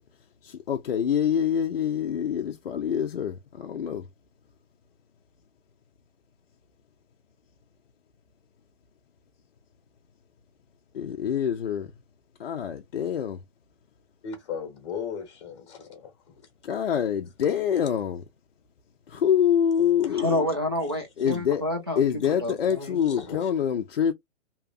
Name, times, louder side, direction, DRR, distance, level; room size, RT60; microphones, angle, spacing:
voice 1, 0.7-4.0 11.0-11.9 12.4-13.4 16.7-18.2 19.1-20.4 21.2-21.6 22.0-24.1, left 8 dB, 55° left, 0.5 m, -25 dB
voice 2, 14.2-16.4 23.0-23.5, left 6 dB, 25° left, 1.1 m, -37 dB
voice 3, 20.0-23.0, left 1 dB, 20° right, 0.4 m, -29 dB
2.8 x 2.3 x 2.3 m
hypercardioid pair, 170°, 36 cm